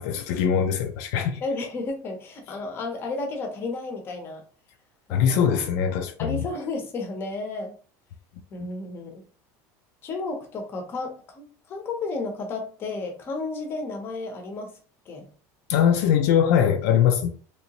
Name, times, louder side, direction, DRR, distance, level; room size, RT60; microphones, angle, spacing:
voice 1, 0.0-1.4 5.1-6.5 15.7-17.3, left 8 dB, 70° left, 0.4 m, -22 dB
voice 2, 1.4-4.4 5.1-5.6 6.2-7.7 8.5-9.2 10.0-14.7 15.1-15.3, left 3 dB, 25° left, 0.7 m, -32 dB
3.0 x 2.8 x 2.9 m
cardioid pair, 170°, 8 cm